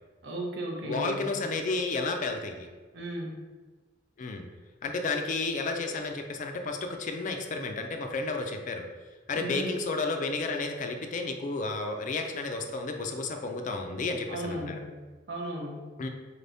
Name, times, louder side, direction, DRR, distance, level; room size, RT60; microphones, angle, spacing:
voice 1, 0.2-1.4 2.9-3.4 9.4-9.7 14.3-14.8 15.3-15.9, right 1 dB, 70° right, 0 dB, 0.8 m, -35 dB
voice 2, 0.8-2.7 4.2-4.5 4.8-8.9 9.3-14.8 16.0-16.1, left 3 dB, 45° left, 4 dB, 0.4 m, -32 dB
4.3 x 3.4 x 2.6 m, 1.3 s
head